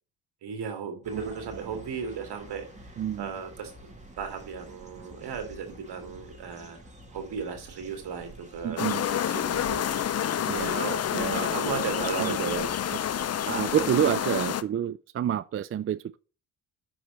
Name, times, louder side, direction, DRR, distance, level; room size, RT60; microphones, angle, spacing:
voice 1, 0.4-3.7 4.2-6.8 7.1-9.0 9.3-10.2 10.7-12.7 14.0-14.1, right 6 dB, 70° right, 2.1 m, -35 dB
sound 1, 1.0-14.5, right 1 dB, 15° right, 2.4 m, -49 dB
voice 2, 3.0-3.3 8.6-9.0 10.5-10.8 11.1-11.4 12.2-12.4 12.9-13.0 13.5-16.2, right 10 dB, 35° right, 0.4 m, -28 dB
sound 2, 8.8-14.6, left 10 dB, 40° left, 0.6 m, -28 dB
5.9 x 4.8 x 6.5 m
supercardioid pair, 60°, 42 cm